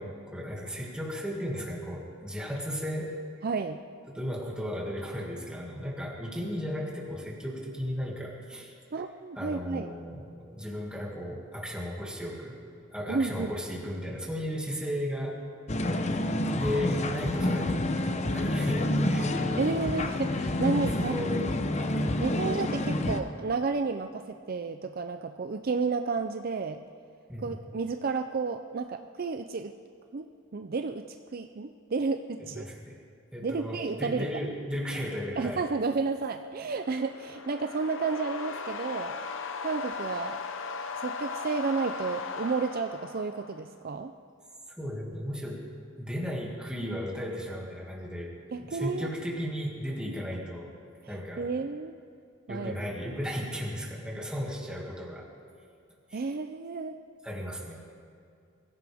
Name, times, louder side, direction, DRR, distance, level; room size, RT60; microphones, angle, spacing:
voice 1, 0.0-3.2 4.1-8.7 9.4-12.6 12.9-15.4 16.5-17.8 18.3-19.7 20.6-21.5 27.3-27.5 32.4-33.0 33.3-35.6 44.8-45.7 46.0-48.3 48.6-50.7 51.1-51.5 52.5-55.3 56.1-56.2 57.2-57.8, equal, 5° right, -2 dB, 2.2 m, -35 dB
voice 2, 3.4-3.8 8.9-9.9 13.1-13.5 19.6-21.1 22.2-26.8 27.4-29.7 30.1-30.3 30.5-31.1 31.3-32.7 33.4-34.3 35.4-39.1 39.6-40.4 41.0-44.1 48.5-49.1 51.0-51.9 52.5-52.7 56.1-57.0, right 4 dB, 45° right, 7 dB, 0.5 m, -31 dB
sound 1, 15.7-23.2, left 1 dB, 35° left, 0.8 m, -28 dB
sound 2, 36.6-43.7, left 4 dB, 70° left, 0.8 m, -38 dB
23.0 x 15.5 x 3.5 m, 2.3 s
head